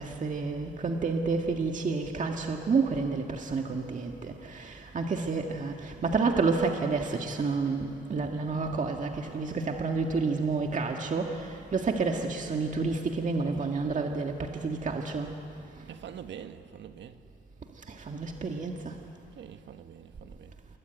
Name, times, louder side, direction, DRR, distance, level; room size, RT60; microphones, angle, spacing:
voice 1, 0.0-15.3 17.9-19.0, right 4 dB, 40° right, 1.8 m, -30 dB
voice 2, 15.9-17.2 19.4-20.5, right 9 dB, 65° right, 1.6 m, -45 dB
27.5 x 22.5 x 9.3 m
cardioid pair, 90°, 20 cm